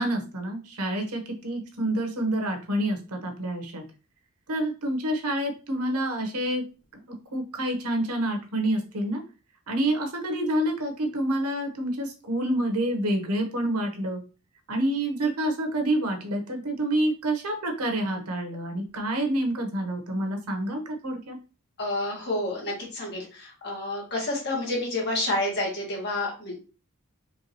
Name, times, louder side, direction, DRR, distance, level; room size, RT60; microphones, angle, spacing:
voice 1, 0.0-3.8 4.5-6.6 6.9-7.0 7.3-9.2 9.7-14.2 14.7-21.4, right 1 dB, 85° right, 4 dB, 1.1 m, -28 dB
voice 2, 21.8-26.6, left 1 dB, 50° left, -2 dB, 1.8 m, -29 dB
4.6 x 2.9 x 3.0 m, 0.34 s
head